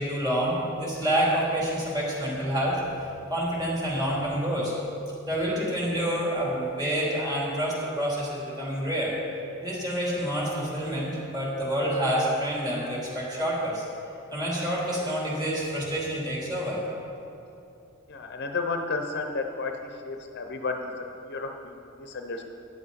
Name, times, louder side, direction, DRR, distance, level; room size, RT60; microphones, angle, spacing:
voice 1, 0.0-2.8 3.3-4.7 5.2-9.1 9.6-13.8 14.3-16.8, equal, 20° right, -5 dB, 3.2 m, -28 dB
voice 2, 18.1-19.8 20.0-22.4, left 3 dB, 50° left, 4 dB, 0.8 m, -32 dB
13.5 x 10.5 x 4.1 m, 2.7 s
head